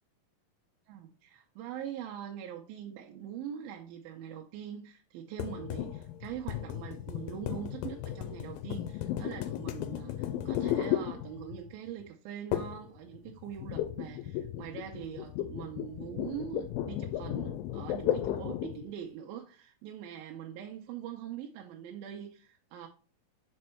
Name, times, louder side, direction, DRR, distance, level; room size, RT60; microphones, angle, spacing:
voice 1, 0.9-22.9, right 9 dB, 85° right, 2.5 m, -43 dB
sound 1, 5.4-11.7 12.5-12.9 13.1-18.8, left 11 dB, 85° left, 2.3 m, -35 dB
6.5 x 4.3 x 4.3 m
omnidirectional pair, 4.2 m